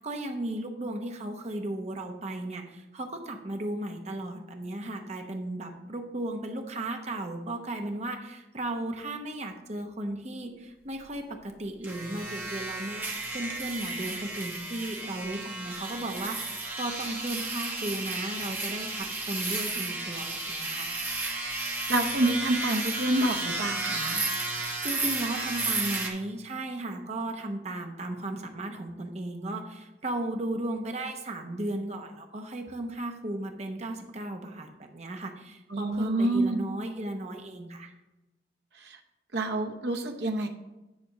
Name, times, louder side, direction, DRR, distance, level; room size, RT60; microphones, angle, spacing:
voice 1, 0.0-20.9 24.3-37.9, right 1 dB, 40° right, 4 dB, 0.9 m, -35 dB
sound 1, 11.8-26.1, right 2 dB, 10° right, 1.1 m, -33 dB
voice 2, 21.9-24.2 35.7-36.6 38.8-39.0 39.3-40.5, right 1 dB, 65° right, 3 dB, 0.8 m, -27 dB
9.7 x 3.5 x 6.1 m, 1.0 s
head